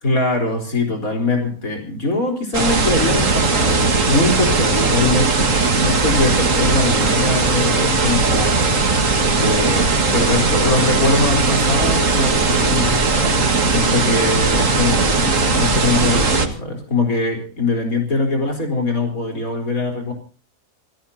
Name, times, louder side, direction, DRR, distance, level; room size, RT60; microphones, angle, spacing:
voice 1, 0.0-8.5 9.3-9.9 10.1-20.1, left 2 dB, 80° left, 3 dB, 4.6 m, -22 dB
sound 1, 2.5-16.5, right 3 dB, 65° right, 2.3 m, -18 dB
28.0 x 17.0 x 2.8 m, 0.38 s
omnidirectional pair, 1.5 m